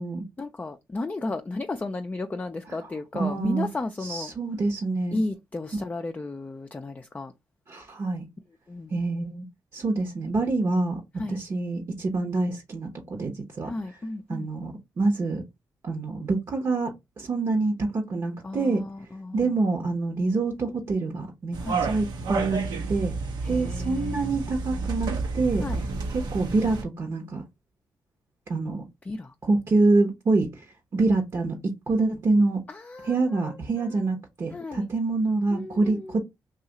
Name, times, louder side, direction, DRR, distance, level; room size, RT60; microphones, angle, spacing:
voice 1, 0.4-4.3 5.1-7.3 8.7-8.9 11.2-11.4 13.6-14.5 18.4-19.5 21.6-21.8 23.4-24.5 25.6-25.8 29.1-29.3 32.7-33.5 33.8-34.0 34.5-34.9 35.5-36.2, left 2 dB, 20° left, 0.4 m, -34 dB
voice 2, 3.1-3.7 4.0-5.2 7.7-8.3 8.9-9.5 9.7-11.0 11.3-13.7 14.3-15.4 15.8-18.8 19.3-22.6 22.9-23.1 23.5-25.7 26.1-27.4 28.5-28.8 29.5-30.6 30.9-31.6 31.9-32.6 33.0-36.2, right 3 dB, 50° right, 1.0 m, -26 dB
sound 1, 21.5-26.8, right 4 dB, 80° right, 0.9 m, -30 dB
2.7 x 2.4 x 4.0 m
cardioid pair, 70°, 7 cm